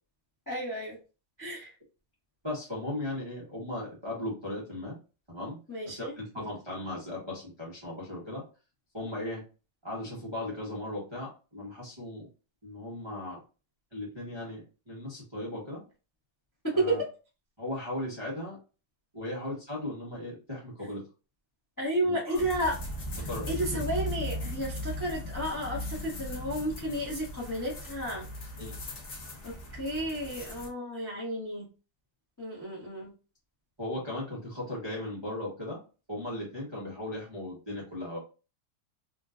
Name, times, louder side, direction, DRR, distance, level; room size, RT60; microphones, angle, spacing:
voice 1, 0.5-1.0 1.4-1.7 5.7-6.6 16.6-17.0 21.8-22.8 23.2-28.3 29.4-31.7 32.4-33.1, right 1 dB, 20° left, -4 dB, 0.6 m, -32 dB
voice 2, 2.4-5.0 5.3-5.6 5.9-8.4 8.9-9.4 9.8-12.3 12.6-13.4 13.9-14.6 14.9-15.8 16.7-17.0 17.6-18.6 19.1-21.1 22.0-22.4 23.3-23.5 28.6-28.8 33.8-35.8 36.1-38.2, left 1 dB, 25° right, -5 dB, 0.5 m, -37 dB
sound 1, 22.3-30.7, left 1 dB, 70° left, 0.6 m, -38 dB
3.6 x 2.6 x 2.4 m, 0.33 s
omnidirectional pair, 2.4 m